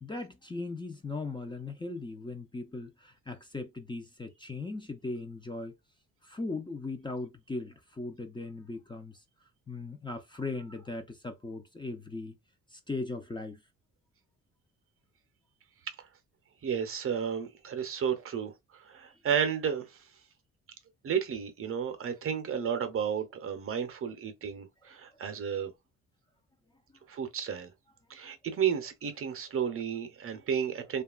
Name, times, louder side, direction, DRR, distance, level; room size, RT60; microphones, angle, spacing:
voice 1, 0.0-5.7 6.2-9.2 9.7-12.3 12.7-13.6, left 3 dB, 15° left, 0.5 m, -38 dB
voice 2, 16.6-20.0 21.0-25.7 27.1-27.7 28.1-31.0, right 7 dB, 45° right, 0.7 m, -32 dB
2.8 x 2.3 x 2.3 m
cardioid pair, 90°, 30 cm